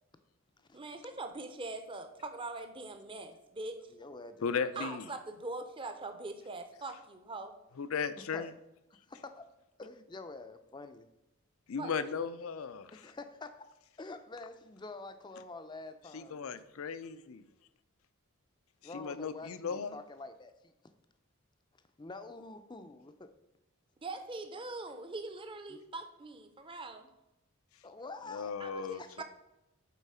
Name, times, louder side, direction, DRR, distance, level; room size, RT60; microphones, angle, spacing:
voice 1, 0.7-3.8 4.8-7.5 11.8-11.9 24.0-27.1 28.6-29.2, right 3 dB, 25° right, 0.6 m, -42 dB
voice 2, 3.9-4.9 8.3-8.5 9.1-9.5 9.8-11.1 12.9-13.7 14.0-16.6 18.8-20.7 22.0-23.3 25.7-25.8 27.8-28.6 29.0-29.2, left 3 dB, 20° left, 0.5 m, -47 dB
voice 3, 4.4-5.1 7.8-8.5 11.7-13.0 16.1-17.4 18.8-20.0 28.3-29.2, left 5 dB, 75° left, 0.5 m, -36 dB
8.4 x 4.0 x 5.6 m
head